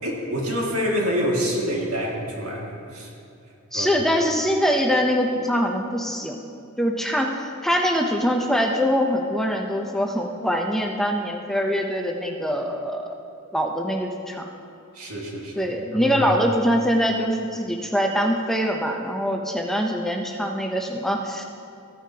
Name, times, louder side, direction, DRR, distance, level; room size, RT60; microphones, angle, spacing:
voice 1, 0.0-3.1 3.7-3.9 14.9-15.6 15.9-16.2, equal, 85° right, -2 dB, 2.0 m, -27 dB
voice 2, 3.7-6.4 6.8-13.2 13.5-14.5 15.6-21.4, equal, ahead, 1 dB, 0.6 m, -23 dB
15.0 x 9.6 x 2.8 m, 2.6 s
head